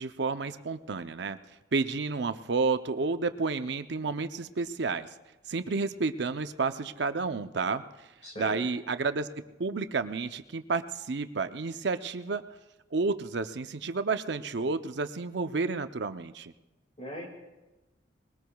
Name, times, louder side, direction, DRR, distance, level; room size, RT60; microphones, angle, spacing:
voice 1, 0.0-1.4 1.7-5.1 5.5-7.8 8.4-9.3 9.6-12.4 12.9-16.5, right 4 dB, 60° right, 10 dB, 0.6 m, -30 dB
voice 2, 8.2-8.6 17.0-17.3, equal, 35° left, 0 dB, 2.2 m, -39 dB
21.5 x 18.5 x 2.3 m, 1.1 s
head